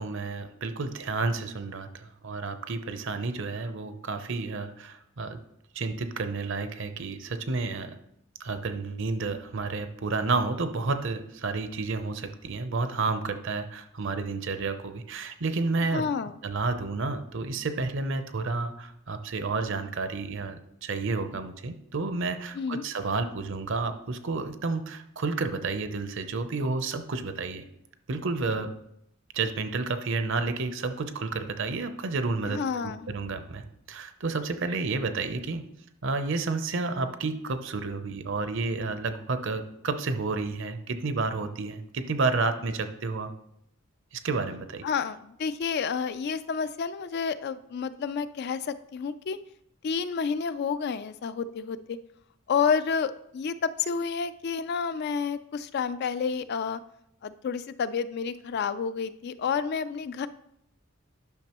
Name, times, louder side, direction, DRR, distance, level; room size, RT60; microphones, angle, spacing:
voice 1, 0.0-5.4 5.7-8.0 8.4-16.0 16.4-27.6 28.1-28.7 29.3-35.7 36.0-43.3 44.1-44.9, right 3 dB, 60° right, 9 dB, 0.7 m, -31 dB
voice 2, 15.9-16.3 22.6-22.8 32.5-33.1 44.8-49.4 49.8-52.0 52.5-56.8 57.2-60.3, left 6 dB, 50° left, 13 dB, 0.3 m, -30 dB
10.5 x 6.0 x 3.0 m, 0.77 s
head